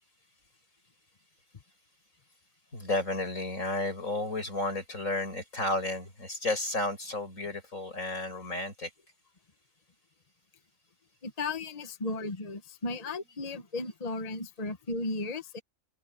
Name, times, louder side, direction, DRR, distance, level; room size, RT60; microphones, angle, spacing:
voice 1, 2.7-8.9, left 2 dB, 90° left, 7.3 m, -32 dB
voice 2, 11.2-15.6, left 3 dB, 30° left, 1.2 m, -35 dB
open air
omnidirectional pair, 1.3 m